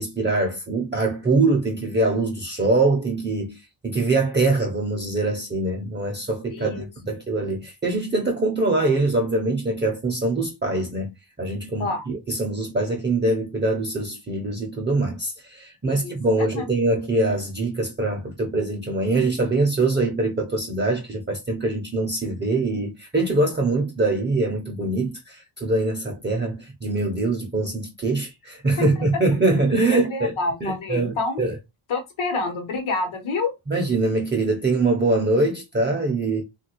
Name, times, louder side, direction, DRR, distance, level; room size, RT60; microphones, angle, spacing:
voice 1, 0.0-3.6 3.8-11.1 11.4-30.3 30.6-31.6 33.7-36.4, right 2 dB, 25° right, 0.5 m, -23 dB
voice 2, 6.5-6.9 11.8-12.1 15.8-16.1 16.5-16.7 28.8-28.9 29.9-31.5 31.9-33.5, left 3 dB, 80° left, 1.0 m, -28 dB
3.2 x 2.4 x 2.8 m
wide cardioid pair, 165°, 48 cm